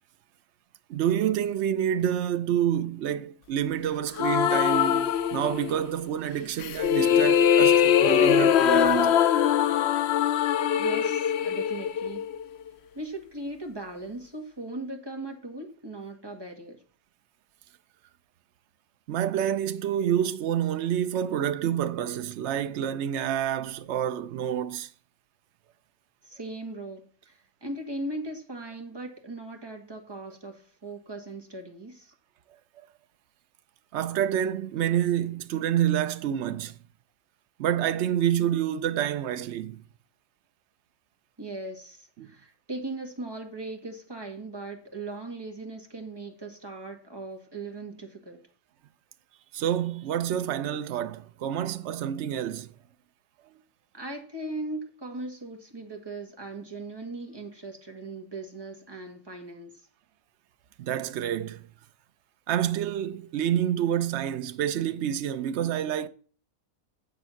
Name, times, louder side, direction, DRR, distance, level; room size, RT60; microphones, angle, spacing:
voice 1, 0.9-9.2 19.1-24.9 33.9-36.8 37.6-39.8 42.2-42.3 49.5-52.7 60.8-61.7 62.5-66.1, right 10 dB, 60° right, 0.9 m, -28 dB
sound 1, 4.2-5.9 6.6-12.7, left 9 dB, 60° left, 0.7 m, -22 dB
voice 2, 10.7-12.3 13.0-16.8 26.2-32.1 41.4-48.4 53.9-59.7, right 2 dB, 15° right, 1.9 m, -38 dB
9.0 x 6.8 x 5.7 m
omnidirectional pair, 1.5 m